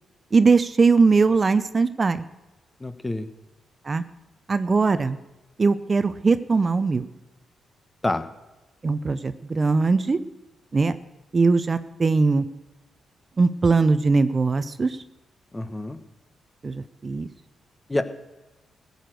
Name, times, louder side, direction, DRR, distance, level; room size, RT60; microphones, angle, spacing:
voice 1, 0.3-2.2 3.9-4.0 4.5-5.2 5.6-7.0 8.8-10.2 10.7-10.9 11.3-12.4 13.4-15.0 16.6-17.3, right 4 dB, 40° right, 13 dB, 0.7 m, -20 dB
voice 2, 2.8-3.3 8.0-8.2 15.5-16.0 17.9-18.0, left 2 dB, 20° left, 11 dB, 1.2 m, -26 dB
16.0 x 6.6 x 7.8 m, 1.1 s
hypercardioid pair, 45°, 0 cm